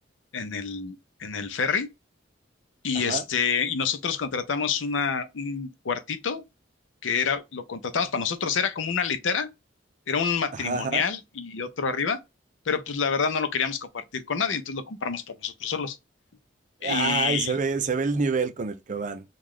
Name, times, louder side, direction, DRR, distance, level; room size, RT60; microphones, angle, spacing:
voice 1, 0.3-1.9 2.8-6.4 7.0-9.5 10.1-12.2 12.7-16.0 16.8-17.5, left 6 dB, 85° left, 0.6 m, -28 dB
voice 2, 10.5-11.0 16.8-19.2, right 4 dB, 40° right, 0.5 m, -27 dB
3.1 x 2.3 x 3.7 m
head